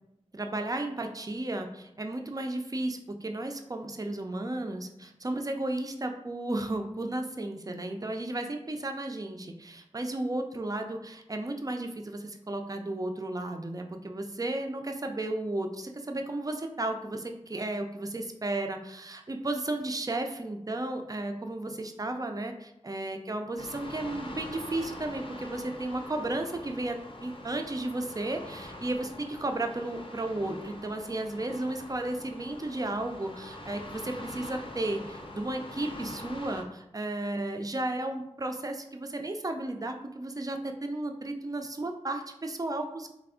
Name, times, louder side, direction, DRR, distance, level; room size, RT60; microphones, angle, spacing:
voice 1, 0.3-43.1, right 2 dB, 30° right, 5 dB, 0.4 m, -34 dB
sound 1, 23.6-36.6, left 1 dB, 45° left, 0.5 m, -44 dB
3.3 x 2.0 x 3.6 m, 0.85 s
wide cardioid pair, 45°, 12 cm